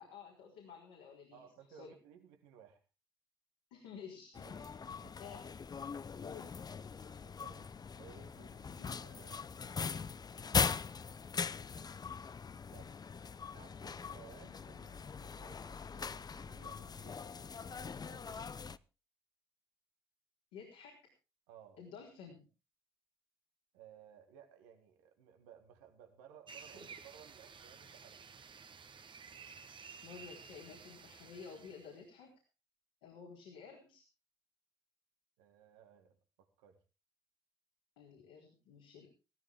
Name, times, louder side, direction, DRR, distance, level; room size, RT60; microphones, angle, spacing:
voice 1, 0.0-1.4 1.7-1.9 3.7-4.4 5.2-5.4 6.2-6.5 20.5-21.0 21.8-22.5 26.7-26.9 29.5-29.6 30.0-32.3 33.0-34.0 38.0-39.1, left 6 dB, 75° left, -2 dB, 3.9 m, -52 dB
voice 2, 1.3-2.8 4.4-5.2 7.2-7.7 8.0-10.2 12.7-13.1 13.5-18.6 21.5-21.8 23.7-28.3 35.4-36.8, right 8 dB, 75° right, 5 dB, 1.9 m, -60 dB
sound 1, 4.3-18.8, left 5 dB, 35° left, 0.7 m, -41 dB
sound 2, 26.5-32.0, right 5 dB, 40° right, 1.4 m, -53 dB
16.5 x 14.0 x 3.7 m, 0.32 s
figure-of-eight pair, 45°, 12 cm